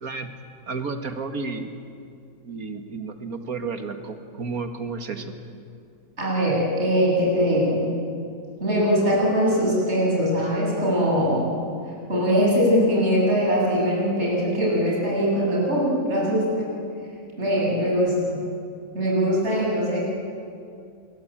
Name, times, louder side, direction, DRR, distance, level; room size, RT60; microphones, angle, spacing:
voice 1, 0.7-1.7 2.5-5.4 19.6-19.7, right 4 dB, 70° right, 7 dB, 2.3 m, -32 dB
voice 2, 6.2-7.9 8.6-11.5 12.1-16.8 17.4-18.4 18.9-20.0, equal, 45° right, -5 dB, 8.5 m, -22 dB
28.5 x 23.0 x 8.9 m, 2.5 s
omnidirectional pair, 1.6 m